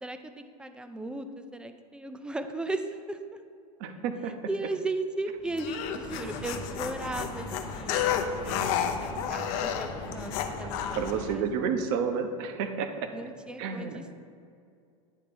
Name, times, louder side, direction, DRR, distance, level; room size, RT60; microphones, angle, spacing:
voice 1, 0.0-3.4 4.2-11.7 13.1-14.1, right 2 dB, 5° right, 8 dB, 0.3 m, -37 dB
voice 2, 3.8-4.3 10.9-13.1 13.6-14.1, right 6 dB, 55° right, 8 dB, 0.7 m, -30 dB
sound 1, 5.4-11.4, left 2 dB, 25° left, 1.0 m, -40 dB
sound 2, 5.6-11.1, left 9 dB, 50° left, 0.6 m, -31 dB
9.2 x 3.3 x 5.8 m, 2.4 s
supercardioid pair, 125°, 18 cm